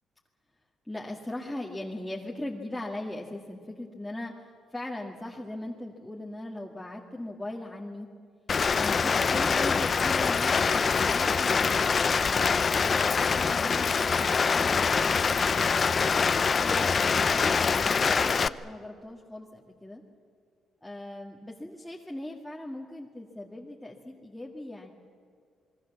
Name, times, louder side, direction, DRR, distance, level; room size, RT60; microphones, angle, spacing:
voice 1, 0.9-8.1 8.8-11.7 12.8-15.4 16.5-20.0 20.8-24.9, left 1 dB, 5° left, -2 dB, 2.0 m, -39 dB
Rain, 8.5-18.5, left 5 dB, 40° left, 0.6 m, -24 dB
27.5 x 21.0 x 7.3 m, 2.2 s
cardioid pair, 90°, 0 cm